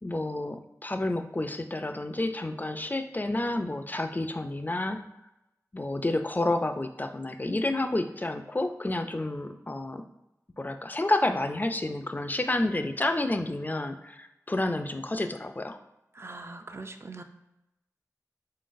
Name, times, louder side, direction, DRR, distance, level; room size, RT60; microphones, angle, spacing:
voice 1, 0.0-5.0 5.7-10.0 10.6-15.8, left 2 dB, 30° left, 7 dB, 0.4 m, -30 dB
voice 2, 16.1-17.2, right 3 dB, 40° right, 7 dB, 0.4 m, -42 dB
3.9 x 3.8 x 2.5 m, 0.90 s
wide cardioid pair, 45°, 6 cm